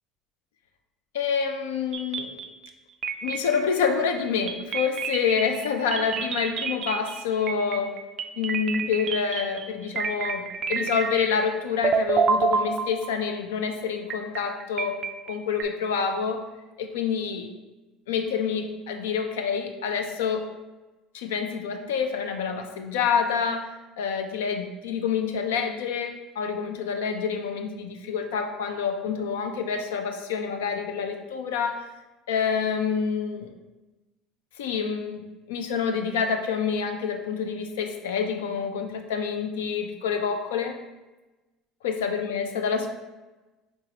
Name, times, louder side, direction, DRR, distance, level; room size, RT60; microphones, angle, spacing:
voice 1, 1.1-2.4 3.2-8.0 8.4-16.4 16.8-17.5 18.1-20.5 21.1-31.9 32.3-33.5 34.6-40.8 41.8-42.9, left 6 dB, 80° left, 5 dB, 0.4 m, -27 dB
sound 1, 1.9-2.7 3.0-3.9 4.5-11.5 11.8-13.3 14.1-15.6, right 5 dB, 45° right, 0.3 m, -28 dB
4.6 x 3.0 x 2.8 m, 1.1 s
hypercardioid pair, 75°, 0 cm